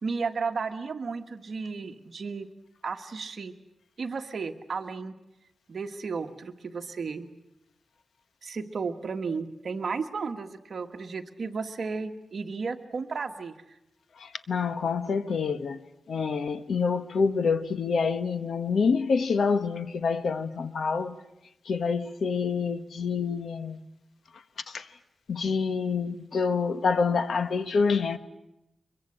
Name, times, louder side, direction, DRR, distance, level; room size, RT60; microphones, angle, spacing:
voice 1, 0.0-2.5 2.8-3.5 4.0-5.1 5.7-7.3 8.4-13.5, right 4 dB, 50° right, 1.5 m, -33 dB
voice 2, 14.2-15.8 16.1-21.1 21.7-23.8 24.7-24.9 25.3-28.2, left 5 dB, 65° left, 1.2 m, -27 dB
23.5 x 22.5 x 8.7 m
wide cardioid pair, 135°, 0 cm